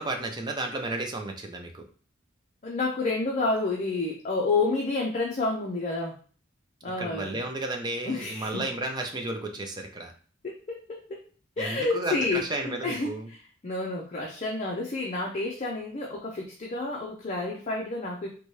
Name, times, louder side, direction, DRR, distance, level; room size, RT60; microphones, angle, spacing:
voice 1, 0.0-1.8 7.0-10.1 11.6-13.3, right 2 dB, 20° right, 3 dB, 0.5 m, -33 dB
voice 2, 2.6-6.2 6.8-7.4 8.0-8.6 10.4-11.0 11.6-13.1 13.6-18.3, left 3 dB, 35° left, -1 dB, 0.5 m, -29 dB
4.1 x 2.2 x 3.1 m, 0.41 s
head